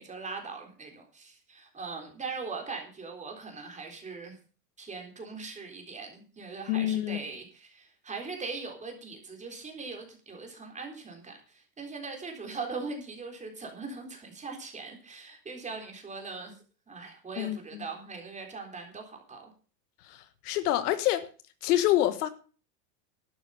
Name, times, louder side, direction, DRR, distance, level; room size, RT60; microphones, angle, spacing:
voice 1, 0.0-4.4 4.8-16.6 16.9-19.5, right 4 dB, 15° right, 3.8 m, -40 dB
voice 2, 6.7-7.2 17.4-17.6 20.1-21.3 21.6-22.3, left 13 dB, 65° left, 1.5 m, -26 dB
12.0 x 9.4 x 5.7 m
supercardioid pair, 135°, 49 cm